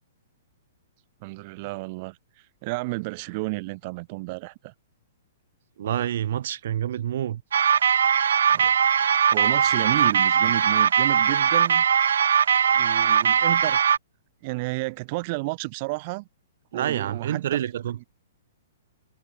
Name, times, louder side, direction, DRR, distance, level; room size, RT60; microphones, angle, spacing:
voice 1, 1.2-4.7 8.5-8.7 9.3-11.8 12.7-13.8 14.4-16.3 16.7-17.6 18.0-18.1, right 25 dB, 35° right, 6.1 m, -32 dB
voice 2, 5.8-7.4 16.7-18.0, right 11 dB, 55° right, 2.6 m, -27 dB
sound 1, 7.5-14.0, right 8 dB, 85° right, 0.5 m, -20 dB
hypercardioid pair, 165°, 0 cm